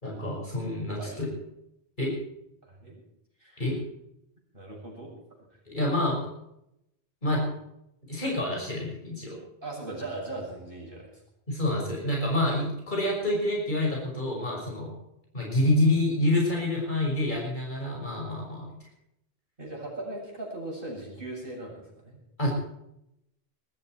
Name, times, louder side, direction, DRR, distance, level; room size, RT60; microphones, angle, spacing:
voice 1, 0.0-1.3 2.0-2.2 3.6-3.8 5.7-6.3 7.2-7.5 8.1-9.4 11.5-14.9 15.3-18.9 22.4-22.5, left 1 dB, 50° left, -3 dB, 6.3 m, -27 dB
voice 2, 2.6-3.0 3.4-3.7 4.5-5.1 5.5-5.6 9.6-11.2 19.6-22.2, right 2 dB, 55° right, -2 dB, 7.6 m, -39 dB
22.0 x 14.0 x 4.7 m, 0.81 s
omnidirectional pair, 1.1 m